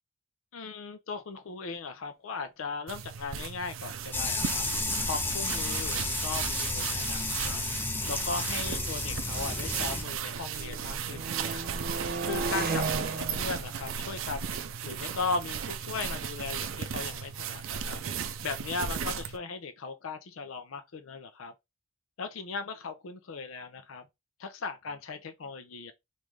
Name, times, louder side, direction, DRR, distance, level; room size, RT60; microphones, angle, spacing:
voice 1, 0.5-4.7 5.1-7.6 8.1-11.6 12.2-14.5 14.8-18.0 18.4-21.5 22.2-24.0 24.4-25.9, left 4 dB, 75° left, 0.5 m, -37 dB
sound 1, 2.9-19.4, right 7 dB, 75° right, 0.4 m, -36 dB
sound 2, 4.1-10.0, left 2 dB, 10° left, 0.5 m, -32 dB
sound 3, 5.1-5.2 6.0-9.9 10.3-16.9, right 3 dB, 50° right, 0.8 m, -39 dB
3.1 x 2.5 x 3.5 m
head